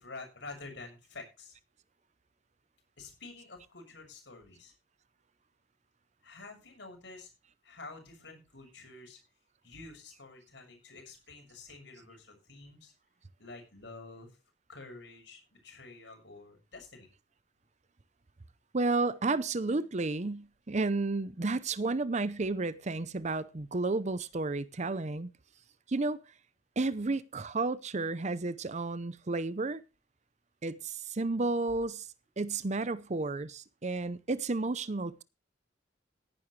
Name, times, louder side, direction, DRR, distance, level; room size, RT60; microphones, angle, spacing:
voice 1, 0.0-1.5 3.0-4.7 6.2-7.3 7.6-9.2 9.6-12.9 13.4-14.3 14.7-17.1, left 3 dB, 70° left, 6.7 m, -49 dB
voice 2, 18.7-25.3 25.9-26.2 26.8-29.8 30.6-32.1 32.4-35.2, right 3 dB, 40° right, 0.7 m, -32 dB
17.0 x 11.0 x 3.3 m
head